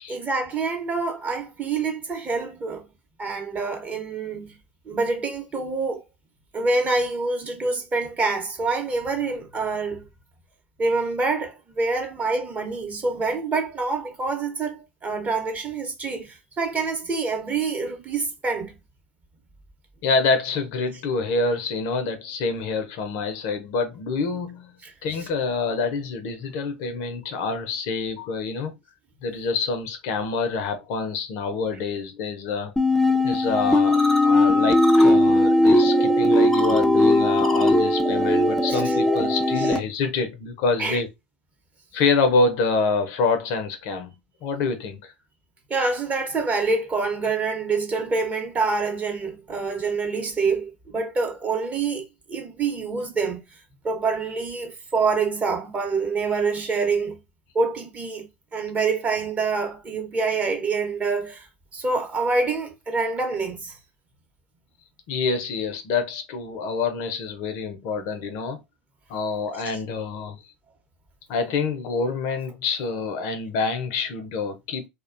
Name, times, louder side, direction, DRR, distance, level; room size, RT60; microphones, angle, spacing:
voice 1, 0.1-2.9 3.2-4.6 4.9-6.0 6.5-10.1 10.8-18.7 24.8-24.9 38.7-39.0 39.6-39.7 40.8-41.0 45.7-53.4 53.8-57.2 57.5-58.3 58.5-61.5 61.7-63.8, right 4 dB, 25° right, 0.8 m, -26 dB
voice 2, 20.0-24.7 25.0-28.7 29.2-32.7 33.2-41.1 41.9-44.1 44.4-45.1 65.1-68.6 69.1-70.4 71.3-74.9, left 4 dB, 60° left, 0.5 m, -26 dB
sound 1, 32.8-39.8, left 1 dB, 5° left, 0.4 m, -18 dB
2.3 x 2.1 x 2.4 m
hypercardioid pair, 90°, 6 cm